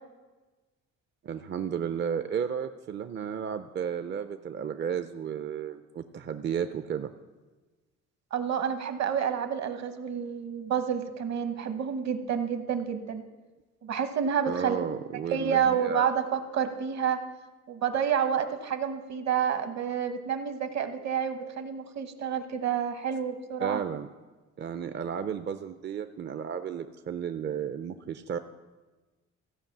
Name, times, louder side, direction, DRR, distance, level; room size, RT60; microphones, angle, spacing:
voice 1, 1.2-7.1 14.5-16.0 23.6-24.1 24.6-28.4, right 7 dB, 35° right, 10 dB, 0.5 m, -33 dB
voice 2, 8.3-13.2 13.8-14.9 15.3-17.2 17.7-23.8, right 8 dB, 60° right, 9 dB, 1.1 m, -29 dB
14.5 x 5.2 x 7.3 m, 1.2 s
cardioid pair, 90°, 30 cm